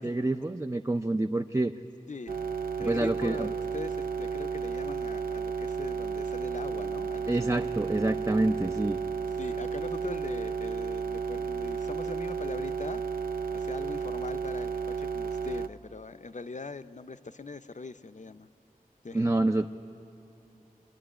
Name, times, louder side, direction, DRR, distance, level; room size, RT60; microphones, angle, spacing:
voice 1, 0.0-1.7 2.8-3.5 7.3-9.0 19.1-19.7, right 2 dB, 20° right, 6 dB, 0.4 m, -27 dB
voice 2, 2.1-2.4 2.8-7.6 9.4-13.0 13.5-18.5 19.0-19.3, left 3 dB, 55° left, 11 dB, 0.6 m, -41 dB
sound 1, 2.3-15.7, right 6 dB, 75° right, 0.5 m, -33 dB
26.5 x 10.5 x 9.9 m, 2.9 s
wide cardioid pair, 45°, 15 cm